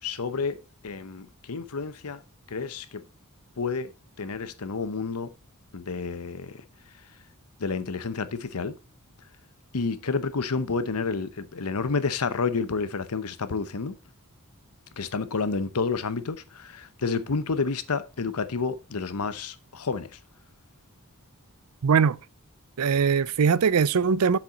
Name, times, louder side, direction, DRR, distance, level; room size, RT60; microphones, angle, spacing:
voice 1, 0.0-2.2 2.5-3.1 3.6-3.9 4.2-5.3 5.7-7.1 7.6-8.8 9.7-14.0 15.0-20.2, left 4 dB, 90° left, 0.8 m, -30 dB
voice 2, 21.8-22.2 22.8-24.4, right 6 dB, 90° right, 0.5 m, -21 dB
7.6 x 7.4 x 3.9 m
head